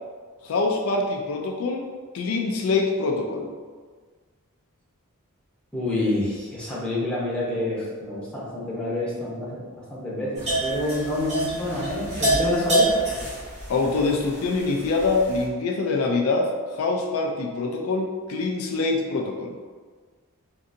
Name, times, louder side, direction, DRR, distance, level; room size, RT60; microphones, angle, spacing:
voice 1, 0.4-1.9 2.1-3.5 13.7-19.5, left 3 dB, 75° left, 2 dB, 0.4 m, -24 dB
voice 2, 5.7-9.6 9.9-12.9, left 1 dB, 5° left, -8 dB, 0.8 m, -27 dB
sound 1, 10.3-15.4, right 1 dB, 30° right, 1.1 m, -27 dB
3.7 x 2.6 x 2.6 m, 1.5 s
head